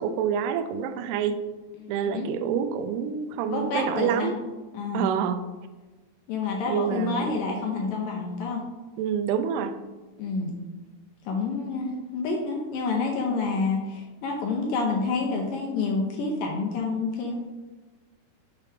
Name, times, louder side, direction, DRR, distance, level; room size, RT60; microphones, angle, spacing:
voice 1, 0.0-1.4 1.9-4.4 4.9-5.5 6.7-7.5 9.0-9.8, right 8 dB, 85° right, 8 dB, 2.6 m, -27 dB
voice 2, 1.8-2.3 3.5-4.3 4.7-5.1 6.3-8.6 10.2-10.6 11.3-17.3, left 4 dB, 80° left, -1 dB, 2.1 m, -28 dB
6.8 x 3.3 x 4.9 m, 1.2 s
omnidirectional pair, 4.6 m